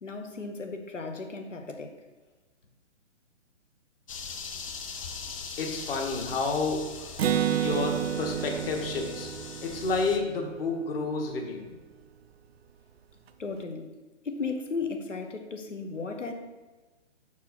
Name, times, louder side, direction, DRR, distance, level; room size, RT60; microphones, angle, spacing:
voice 1, 0.0-1.9 13.4-13.9 14.2-16.3, left 4 dB, 85° left, 5 dB, 1.1 m, -35 dB
sound 1, 4.1-10.2, left 5 dB, 30° left, 0.5 m, -40 dB
voice 2, 5.6-6.9 7.5-9.3 9.6-11.6, left 3 dB, 50° left, 1 dB, 1.5 m, -30 dB
Acoustic guitar, 7.2-10.8, right 10 dB, 55° right, 0.5 m, -30 dB
6.1 x 4.6 x 5.8 m, 1.2 s
figure-of-eight pair, 135°, 36 cm